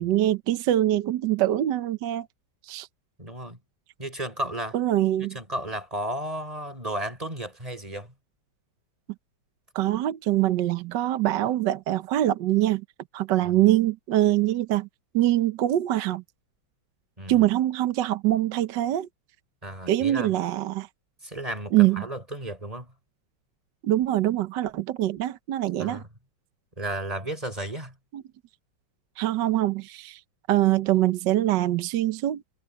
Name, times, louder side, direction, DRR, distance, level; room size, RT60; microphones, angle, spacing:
voice 1, 0.0-2.3 2.7-2.9 4.7-5.3 9.7-12.8 13.1-14.9 15.1-16.2 17.3-19.1 19.9-20.9 21.7-22.0 23.8-26.0 28.1-28.2 29.2-30.2 30.5-32.4, right 14 dB, 65° right, 1.3 m, -24 dB
voice 2, 3.2-3.6 4.0-4.8 5.3-8.1 13.4-13.5 17.2-17.5 19.6-20.3 21.2-22.9 25.8-26.1 26.8-27.9, right 1 dB, 15° right, 5.6 m, -33 dB
omnidirectional pair, 2.3 m